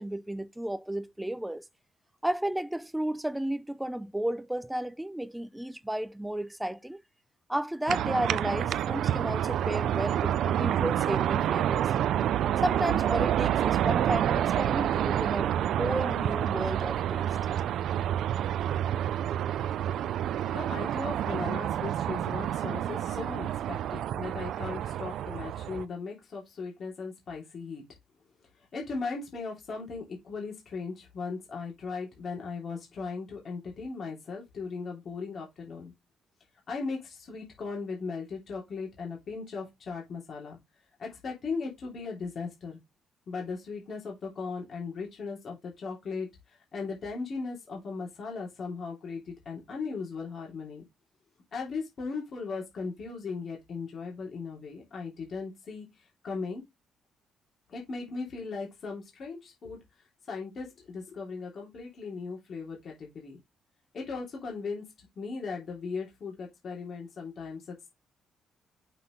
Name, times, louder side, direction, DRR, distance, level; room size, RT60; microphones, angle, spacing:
voice 1, 0.0-1.6 2.2-7.0 7.5-11.9 12.6-17.3, right 1 dB, 5° right, 0.4 m, -33 dB
sound 1, 7.9-25.9, right 11 dB, 65° right, 0.4 m, -28 dB
voice 2, 20.5-27.8 28.7-35.9 36.7-40.6 41.0-42.8 43.3-46.3 46.7-50.8 51.5-55.9 56.2-56.6 57.7-59.8 60.3-63.4 63.9-64.8 65.2-67.9, left 4 dB, 40° left, 3.1 m, -37 dB
6.2 x 5.7 x 3.2 m
cardioid pair, 165°, 0 cm